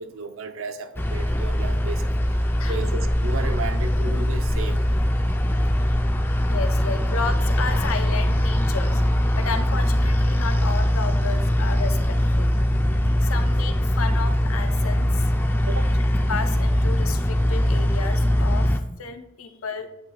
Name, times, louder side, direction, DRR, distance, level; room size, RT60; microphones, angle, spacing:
voice 1, 0.0-2.1 2.7-4.9 15.7-15.9, right 3 dB, 80° right, 8 dB, 0.6 m, -33 dB
sound 1, 1.0-18.8, equal, 10° left, 0.3 m, -21 dB
voice 2, 2.4-2.8 5.4-5.9 6.2-9.0 9.4-15.7 16.3-19.9, left 5 dB, 90° left, 7 dB, 0.7 m, -33 dB
8.6 x 3.0 x 4.9 m, 0.85 s
head